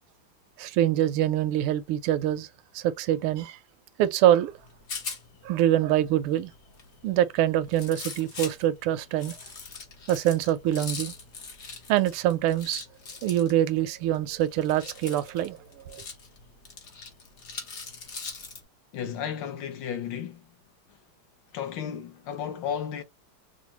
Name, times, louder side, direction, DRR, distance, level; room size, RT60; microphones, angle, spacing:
voice 1, 0.6-2.5 2.7-3.6 4.0-4.5 5.4-6.5 7.0-9.3 10.1-11.1 11.9-12.8 13.2-15.6 15.9-16.0, right 12 dB, 90° right, 1.5 m, -24 dB
Rattle, 4.5-18.6, left 4 dB, 50° left, 0.9 m, -42 dB
voice 2, 18.9-20.4 21.5-23.0, left 8 dB, 65° left, 1.3 m, -33 dB
5.1 x 2.1 x 2.9 m
omnidirectional pair, 2.4 m